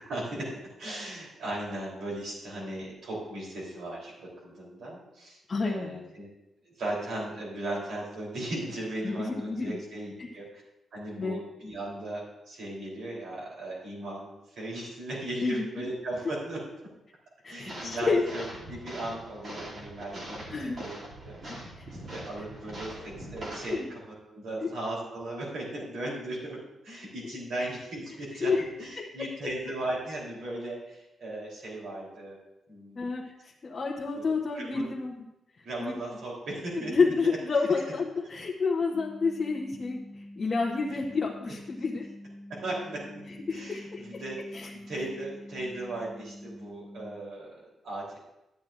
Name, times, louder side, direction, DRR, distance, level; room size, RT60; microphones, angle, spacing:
voice 1, 0.1-0.5 0.8-6.3 6.6-10.6 10.9-16.6 17.5-20.9 21.2-21.8 22.1-26.6 26.8-32.4 32.7-33.1 34.1-34.8 35.6-36.9 37.7-37.8 42.5-43.2 43.5-48.2, right 1 dB, 75° right, -4 dB, 3.4 m, -37 dB
voice 2, 5.5-6.0 9.0-9.8 10.2-10.3 11.2-11.4 15.4-15.6 17.4-18.2 20.5-20.8 21.8-21.9 23.7-23.9 24.6-24.7 27.6-27.7 28.4-28.6 29.0-29.1 32.9-35.2 35.8-35.9 36.8-42.1 43.3-44.2 44.5-44.7, left 4 dB, 30° left, -2 dB, 0.9 m, -29 dB
sound 1, 17.7-23.8, right 1 dB, 45° right, 2.7 m, -42 dB
sound 2, 38.9-47.2, left 1 dB, 20° right, 1.2 m, -46 dB
13.0 x 9.2 x 2.5 m, 0.88 s
wide cardioid pair, 160°, 0 cm